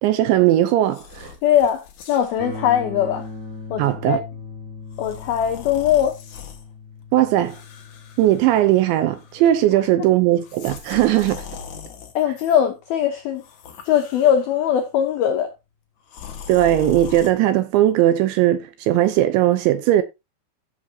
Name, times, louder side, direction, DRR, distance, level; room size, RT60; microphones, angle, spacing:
voice 1, 0.0-1.3 3.8-4.2 7.1-7.6 8.2-11.4 16.5-20.0, right 13 dB, 80° right, 2.8 m, -18 dB
sound 1, 0.9-2.4 3.1-3.3 4.9-6.6 7.4-8.9 9.1-9.6 10.3-12.6 13.3-14.7 16.1-17.3, left 8 dB, 65° left, 1.8 m, -40 dB
voice 2, 1.4-3.3 3.7-4.2 5.0-6.2 12.2-13.4 13.9-15.5, left 9 dB, 85° left, 2.1 m, -20 dB
sound 2, 2.4-12.3, left 3 dB, 15° right, 4.0 m, -40 dB
15.0 x 7.2 x 2.8 m
omnidirectional pair, 6.0 m